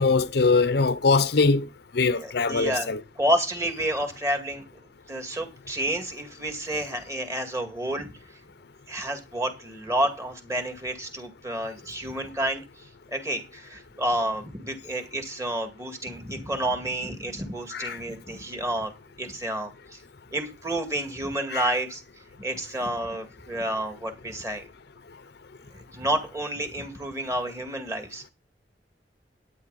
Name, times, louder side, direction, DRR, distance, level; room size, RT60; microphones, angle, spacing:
voice 1, 0.0-1.7 1.9-3.0 17.7-18.0 21.5-21.7, left 4 dB, 65° left, 0.7 m, -22 dB
voice 2, 2.1-2.9 3.2-4.6 5.1-8.1 8.9-12.6 13.1-18.9 19.2-20.0 20.3-22.0 22.4-24.6 25.9-28.3, right 1 dB, 15° right, 2.2 m, -30 dB
12.5 x 9.4 x 4.1 m
head